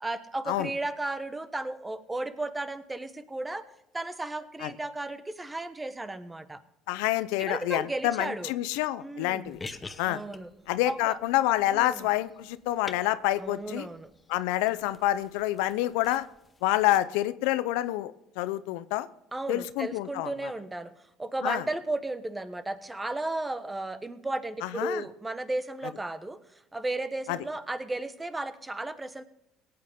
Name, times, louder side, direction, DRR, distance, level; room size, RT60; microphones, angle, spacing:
voice 1, 0.0-3.6 3.9-6.6 7.4-8.5 9.0-9.6 10.1-10.5 10.8-11.2 11.7-12.1 13.4-14.1 19.3-20.9 21.2-26.4 26.7-29.2, right 2 dB, 15° right, 11 dB, 1.2 m, -34 dB
voice 2, 6.9-9.6 10.0-10.2 10.7-13.9 14.3-16.3 16.6-19.1 19.5-20.5 21.4-21.6 24.6-25.0 27.3-27.4, left 15 dB, 80° left, 15 dB, 0.6 m, -28 dB
sound 1, 9.4-17.0, left 3 dB, 20° left, 1.0 m, -48 dB
18.0 x 8.9 x 3.6 m, 0.86 s
supercardioid pair, 90°, 0 cm